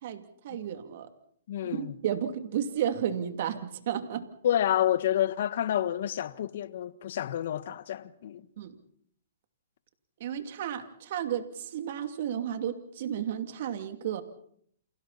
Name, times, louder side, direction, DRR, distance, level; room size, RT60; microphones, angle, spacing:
voice 1, 0.0-1.1 1.7-4.3 8.6-8.8 10.2-14.2, right 9 dB, 55° right, 2.7 m, -33 dB
voice 2, 1.5-2.0 4.4-8.4, left 11 dB, 60° left, 1.5 m, -29 dB
30.0 x 28.5 x 4.2 m
hypercardioid pair, 145°, 0 cm